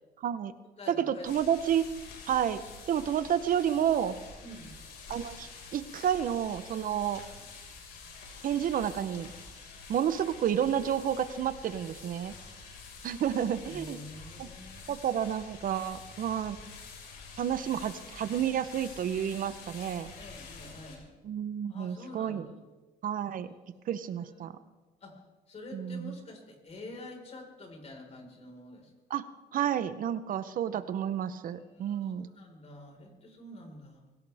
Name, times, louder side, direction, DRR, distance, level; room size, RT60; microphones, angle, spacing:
voice 1, 0.2-0.5 1.1-1.8 2.3-4.2 5.1-7.2 8.4-9.3 9.9-12.3 13.0-14.0 14.4-14.5 14.9-16.6 17.4-20.1 21.2-22.4 23.0-23.5 23.9-24.6 25.7-26.1 29.1-29.2 29.5-32.3, right 9 dB, 55° right, 12 dB, 0.9 m, -30 dB
voice 2, 0.8-1.3 4.4-4.8 13.7-15.0 20.2-21.1 21.7-22.6 23.2-23.6 24.0-24.6 25.0-25.2 25.5-28.9 30.7-30.9 31.5-34.0, left 1 dB, 40° left, 1 dB, 4.8 m, -47 dB
sound 1, 1.2-21.0, left 4 dB, 75° left, 5.3 m, -48 dB
23.0 x 17.0 x 3.5 m, 1.2 s
cardioid pair, 110°, 17 cm